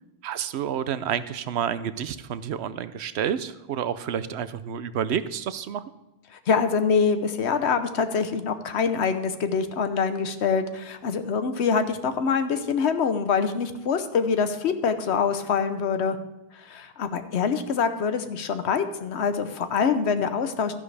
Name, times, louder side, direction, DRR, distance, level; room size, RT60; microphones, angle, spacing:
voice 1, 0.2-5.8, right 8 dB, 80° right, 14 dB, 0.9 m, -29 dB
voice 2, 6.5-16.2 16.6-20.8, left 6 dB, 85° left, 10 dB, 1.1 m, -25 dB
13.0 x 10.5 x 3.4 m, 1.0 s
omnidirectional pair, 1.1 m